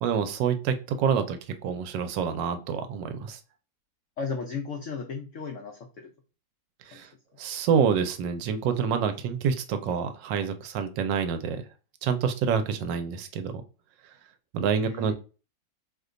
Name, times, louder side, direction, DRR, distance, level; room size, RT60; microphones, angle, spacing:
voice 1, 0.0-3.4 6.9-7.1 7.4-11.6 12.0-13.6 14.5-15.1, right 7 dB, 85° right, 9 dB, 1.3 m, -27 dB
voice 2, 4.2-6.1 6.9-7.0 14.8-15.1, left 5 dB, 90° left, 2 dB, 0.6 m, -35 dB
3.0 x 2.2 x 3.7 m, 0.34 s
omnidirectional pair, 1.9 m